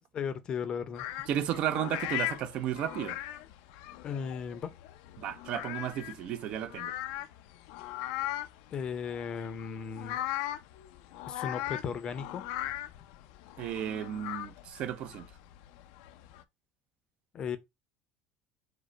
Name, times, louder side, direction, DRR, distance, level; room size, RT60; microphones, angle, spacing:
voice 1, 0.1-1.0 4.0-4.7 8.7-10.2 11.3-12.4 17.3-17.6, left 7 dB, 35° left, 0.6 m, -36 dB
sound 1, 0.9-16.4, left 14 dB, 80° left, 0.5 m, -39 dB
voice 2, 1.3-3.2 5.2-6.9 13.6-15.3, right 10 dB, 50° right, 0.5 m, -33 dB
5.0 x 2.1 x 4.4 m
cardioid pair, 135°, 3 cm